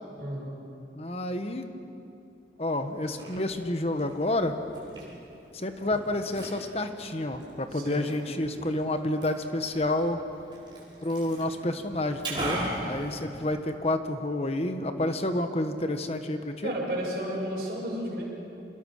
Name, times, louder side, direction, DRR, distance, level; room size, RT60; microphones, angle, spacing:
voice 1, 0.2-0.5 7.7-8.0 16.6-18.2, equal, 55° right, -5 dB, 6.2 m, -32 dB
voice 2, 0.9-1.6 2.6-4.5 5.5-10.2 11.0-16.8, left 1 dB, 35° left, 7 dB, 1.2 m, -29 dB
Liquid, 2.9-13.9, right 1 dB, 25° right, 5.9 m, -40 dB
26.0 x 21.0 x 6.5 m, 2.7 s
head